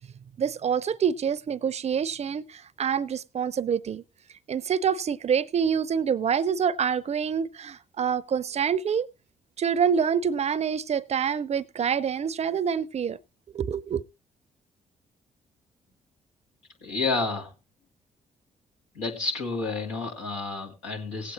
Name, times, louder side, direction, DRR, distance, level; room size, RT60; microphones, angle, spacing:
voice 1, 0.4-4.0 4.5-9.1 9.6-13.2 13.5-14.0, right 7 dB, 45° right, 0.6 m, -26 dB
voice 2, 16.8-17.5 18.9-21.3, left 3 dB, 85° left, 2.4 m, -30 dB
18.5 x 8.3 x 2.9 m
hypercardioid pair, 45°, 16 cm